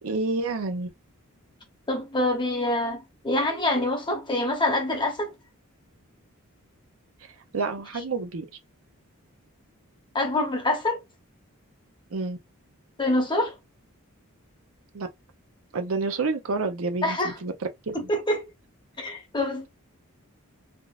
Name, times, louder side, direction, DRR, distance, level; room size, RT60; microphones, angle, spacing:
voice 1, 0.0-0.9 7.5-8.5 12.1-12.4 14.9-15.1 15.7-17.5 17.9-18.1, right 3 dB, 65° right, 0.6 m, -29 dB
voice 2, 1.9-5.3 10.1-11.0 13.0-13.5 17.0-17.3 18.1-18.5 19.0-19.7, left 1 dB, 20° left, 0.9 m, -25 dB
3.6 x 2.5 x 2.3 m
head